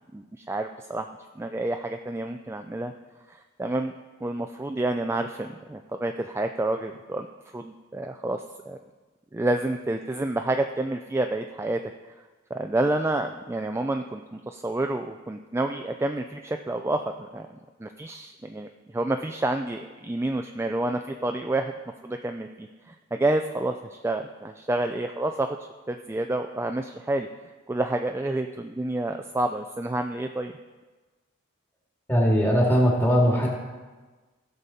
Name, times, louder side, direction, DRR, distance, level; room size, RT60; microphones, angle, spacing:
voice 1, 0.1-1.1 1.4-2.9 3.3-3.9 4.2-7.3 7.5-8.8 9.3-11.9 12.5-17.5 17.8-21.7 22.0-25.6 25.9-27.3 27.7-30.5, right 2 dB, 10° right, 5 dB, 0.3 m, -29 dB
voice 2, 32.1-33.5, equal, 10° left, -3 dB, 2.1 m, -20 dB
16.0 x 6.7 x 4.2 m, 1.3 s
head